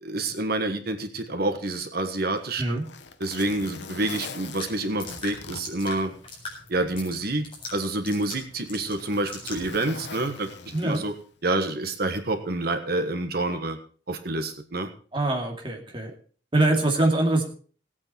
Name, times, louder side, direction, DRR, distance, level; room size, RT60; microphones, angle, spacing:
voice 1, 0.0-2.8 3.2-6.1 6.7-10.5 10.8-11.1 11.4-13.8 14.1-14.9, right 2 dB, 55° right, 7 dB, 1.4 m, -28 dB
Zipper (clothing), 2.2-6.6 7.0-7.1 7.9-11.4 12.5-12.7, left 5 dB, 70° left, 1.1 m, -42 dB
sound 1, 4.6-9.8, left 3 dB, 30° left, 4.4 m, -41 dB
voice 2, 10.7-11.0 15.1-16.1 16.5-17.4, right 2 dB, 25° right, 1 dB, 2.5 m, -23 dB
17.5 x 8.7 x 4.4 m, 0.42 s
head